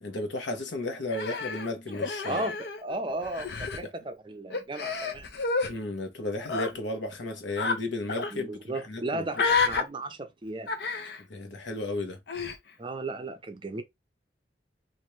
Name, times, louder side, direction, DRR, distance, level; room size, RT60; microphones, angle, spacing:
voice 1, 0.0-2.4 3.8-3.9 5.7-9.2 11.2-12.2, left 2 dB, 85° left, 1.0 m, -34 dB
Human voice, 1.1-2.9 3.2-3.8 4.5-5.7 6.4-6.7 7.6-7.8 8.1-8.3 9.3-9.8 10.7-11.2 12.3-12.6, left 4 dB, 65° left, 0.6 m, -30 dB
voice 2, 2.2-5.3 8.3-10.7 12.8-13.8, right 2 dB, 25° right, 0.5 m, -35 dB
3.0 x 2.5 x 3.1 m
head